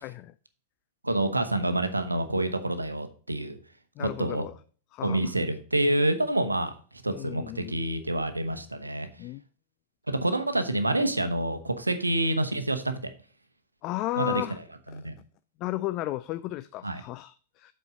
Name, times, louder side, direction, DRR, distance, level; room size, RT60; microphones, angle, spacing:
voice 1, 0.0-0.3 4.0-4.5 4.9-5.3 7.1-7.8 9.2-9.4 13.8-14.6 14.9-15.0 15.6-17.7, left 16 dB, 40° left, 14 dB, 0.3 m, -34 dB
voice 2, 1.0-3.6 4.0-4.5 5.0-6.7 7.0-9.1 10.1-12.9 14.2-14.4 14.9-15.1 16.8-17.0, right 1 dB, 85° right, 9 dB, 0.9 m, -27 dB
8.0 x 4.4 x 5.2 m, 0.41 s
figure-of-eight pair, 90°, 0 cm